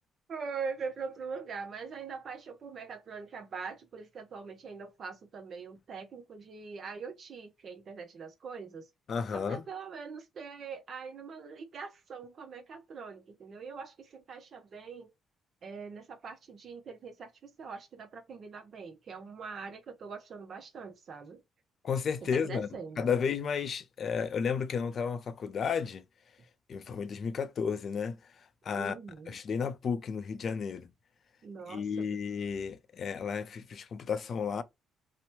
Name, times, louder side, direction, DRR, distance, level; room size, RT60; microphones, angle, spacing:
voice 1, 0.3-8.9 9.3-15.1 15.6-21.4 22.3-23.1 28.7-29.4 31.4-31.9, right 5 dB, 55° right, 0.5 m, -42 dB
voice 2, 9.1-9.6 21.8-22.7 23.0-26.0 26.7-28.2 28.6-28.9 29.3-30.9 31.7-34.6, left 6 dB, 55° left, 0.5 m, -32 dB
2.9 x 2.0 x 3.0 m
cardioid pair, 90°, 0 cm